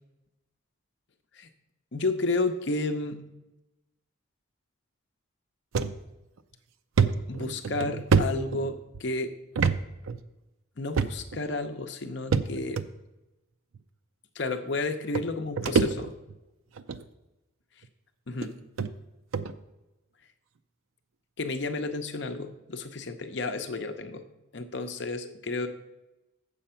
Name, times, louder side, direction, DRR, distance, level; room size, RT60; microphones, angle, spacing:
voice 1, 1.9-3.2 7.3-9.3 10.8-12.8 14.3-16.1 18.3-18.6 21.4-24.2 24.5-25.7, left 3 dB, 55° left, 6 dB, 0.7 m, -31 dB
sound 1, 5.7-5.9 6.4-6.5 7.0-9.0 9.5-9.8 10.1-10.2 10.9-11.4 12.3-12.8 13.7-13.8 14.8-14.9 15.1-16.3 16.8-17.0 17.8-17.9 18.4-18.5 18.8-18.9 19.3-19.5, right 5 dB, 80° right, 0.5 m, -26 dB
7.8 x 7.0 x 5.7 m, 1.0 s
head